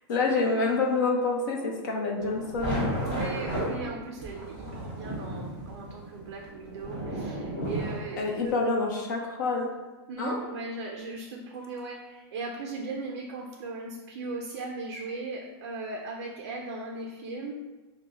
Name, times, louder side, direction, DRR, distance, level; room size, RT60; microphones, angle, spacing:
voice 1, 0.1-2.9 8.2-9.7 10.2-10.4, left 3 dB, 45° left, 1 dB, 0.7 m, -27 dB
sound 1, 2.2-8.5, right 1 dB, 10° left, 1.0 m, -34 dB
voice 2, 3.0-8.5 10.1-17.6, right 3 dB, 40° right, 0 dB, 0.4 m, -38 dB
5.7 x 2.1 x 3.8 m, 1.2 s
supercardioid pair, 180°, 14 cm